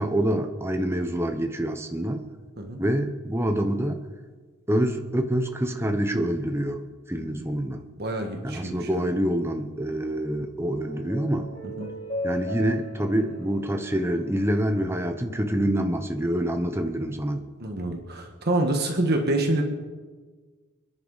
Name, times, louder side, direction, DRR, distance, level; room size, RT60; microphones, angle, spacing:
voice 1, 0.0-2.2 2.8-4.0 4.7-6.8 7.1-7.8 8.4-11.5 12.2-17.4, right 1 dB, 10° right, 5 dB, 0.8 m, -26 dB
voice 2, 7.1-7.6 8.0-9.1 11.6-11.9 17.6-19.6, right 1 dB, 50° right, 3 dB, 1.5 m, -27 dB
sound 1, 10.4-14.9, equal, 35° left, 4.8 m, -37 dB
27.0 x 10.5 x 4.1 m, 1.4 s
head